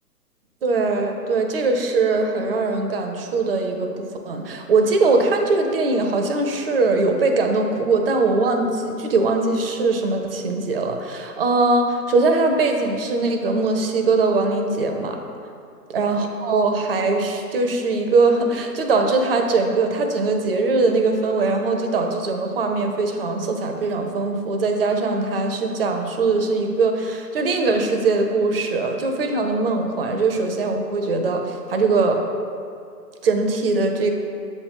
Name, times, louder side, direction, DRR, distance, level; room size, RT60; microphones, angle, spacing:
voice 1, 0.6-15.2 15.9-32.2 33.2-34.1, right 3 dB, 35° right, 4 dB, 0.6 m, -21 dB
7.0 x 3.2 x 5.0 m, 2.4 s
figure-of-eight pair, 125°, 49 cm